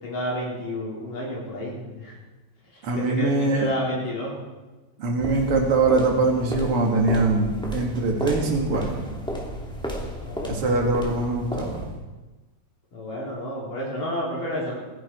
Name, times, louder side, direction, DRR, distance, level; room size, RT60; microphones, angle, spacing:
voice 1, 0.0-2.1 2.7-4.4 10.2-10.7 12.9-14.8, equal, 60° left, -5 dB, 5.4 m, -30 dB
voice 2, 2.8-3.7 5.0-9.0 10.5-11.8, right 3 dB, 40° right, 1 dB, 3.1 m, -23 dB
sound 1, 5.2-12.0, equal, ahead, 2.0 m, -33 dB
28.5 x 10.5 x 4.8 m, 1.2 s
omnidirectional pair, 4.5 m